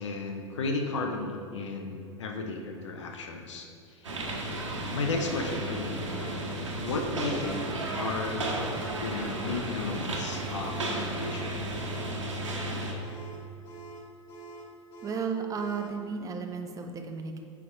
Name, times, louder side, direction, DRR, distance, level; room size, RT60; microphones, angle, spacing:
voice 1, 0.0-4.1 4.9-6.1 6.6-7.6 7.9-8.5 9.0-11.6, left 3 dB, 65° left, 3 dB, 0.8 m, -34 dB
sound 1, 4.0-12.9, right 1 dB, 75° right, 1.2 m, -33 dB
sound 2, 6.1-16.0, right 2 dB, 50° left, 1.7 m, -46 dB
voice 2, 15.0-17.4, right 5 dB, 20° right, 5 dB, 0.7 m, -34 dB
9.3 x 3.6 x 5.3 m, 2.4 s
figure-of-eight pair, 85°, 16 cm